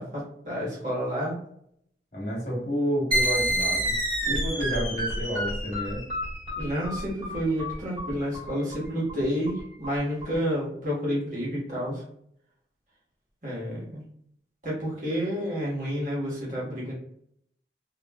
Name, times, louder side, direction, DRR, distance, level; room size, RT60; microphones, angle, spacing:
voice 1, 0.0-1.3 6.6-12.0 13.4-14.0 14.6-16.9, equal, 45° right, -6 dB, 1.3 m, -30 dB
voice 2, 2.1-4.0 4.2-6.0, equal, 45° left, -3 dB, 1.2 m, -30 dB
sound 1, 3.1-10.3, right 1 dB, 30° right, 1.5 m, -29 dB
3.1 x 2.6 x 2.3 m, 0.70 s
head